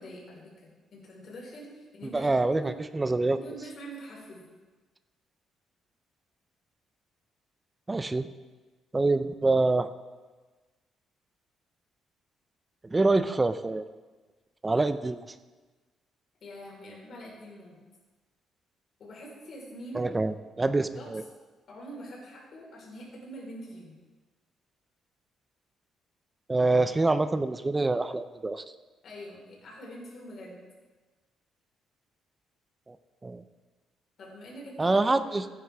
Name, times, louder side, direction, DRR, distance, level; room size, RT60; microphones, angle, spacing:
voice 1, 0.0-2.8 3.3-4.4 16.4-17.7 19.0-20.1 20.9-21.1 21.7-24.0 29.0-30.6 34.2-35.5, equal, 50° left, -3 dB, 4.3 m, -44 dB
voice 2, 2.1-3.4 7.9-8.3 8.9-9.9 12.9-13.8 14.6-15.2 19.9-21.2 26.5-28.6 32.9-33.0 33.2-33.4 34.8-35.5, right 2 dB, 15° right, 12 dB, 0.5 m, -26 dB
15.5 x 9.8 x 3.5 m, 1.3 s
cardioid pair, 135°, 0 cm